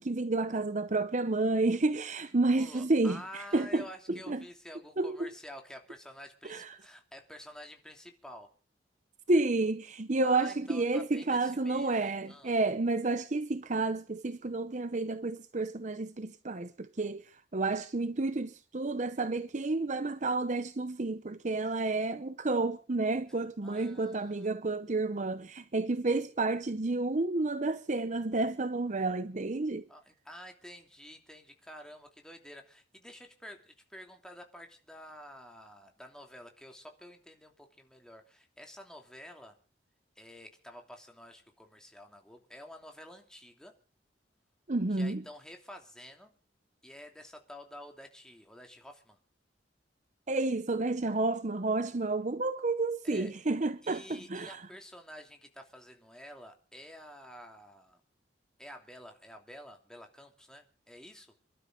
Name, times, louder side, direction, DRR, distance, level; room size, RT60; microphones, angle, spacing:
voice 1, 0.0-4.4 5.0-5.3 6.4-6.8 9.3-17.2 17.5-29.8 44.7-45.2 50.3-54.6, right 2 dB, 40° right, 0.8 m, -30 dB
voice 2, 2.5-8.5 10.2-12.5 23.6-24.5 29.9-39.6 40.2-43.8 44.9-46.3 46.8-49.2 53.0-53.3 53.8-58.0 58.6-61.4, equal, 5° left, 2.9 m, -50 dB
28.0 x 12.5 x 3.9 m
head